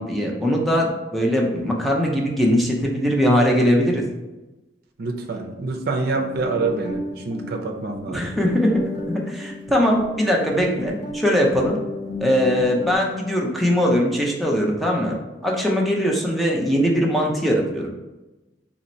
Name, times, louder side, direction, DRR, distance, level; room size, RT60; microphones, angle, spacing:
voice 1, 0.0-4.0 8.1-8.8 9.1-11.8 12.2-15.2 15.4-17.9, equal, ahead, -2 dB, 0.5 m, -21 dB
voice 2, 5.0-8.3, right 3 dB, 60° right, 4 dB, 0.5 m, -26 dB
sound 1, 6.1-12.9, left 1 dB, 50° left, 0.9 m, -34 dB
3.0 x 2.8 x 4.2 m, 1.1 s
head